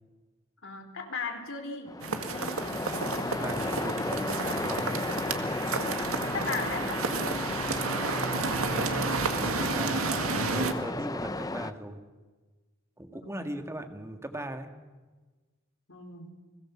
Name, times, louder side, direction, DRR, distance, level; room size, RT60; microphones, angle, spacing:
voice 1, 0.6-2.6 6.2-7.1 13.1-13.4 15.9-16.3, left 4 dB, 65° left, 4 dB, 4.4 m, -37 dB
Waves surf, 1.9-11.7, left 2 dB, 15° left, 0.7 m, -34 dB
sound 1, 2.0-10.7, right 4 dB, 80° right, 2.0 m, -31 dB
voice 2, 3.3-5.5 8.4-12.0 13.0-14.7, right 1 dB, 15° right, 6 dB, 2.0 m, -39 dB
30.0 x 21.0 x 7.4 m, 1.3 s
head